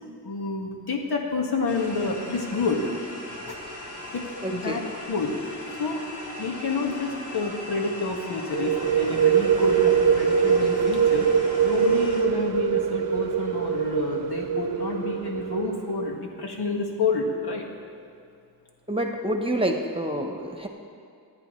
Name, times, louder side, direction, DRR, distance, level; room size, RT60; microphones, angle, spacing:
voice 1, 0.2-2.9 3.5-3.6 4.1-4.2 4.5-4.8 5.1-6.0 6.4-11.3 11.6-17.7, left 3 dB, 85° left, -1 dB, 2.0 m, -29 dB
sound 1, 1.7-12.2, left 1 dB, 50° left, 3.6 m, -39 dB
voice 2, 4.4-4.8 18.9-20.7, right 1 dB, 15° right, 3 dB, 1.1 m, -27 dB
sound 2, 8.5-16.1, right 7 dB, 80° right, 0.8 m, -23 dB
27.0 x 9.7 x 3.3 m, 2.4 s
wide cardioid pair, 165°, 38 cm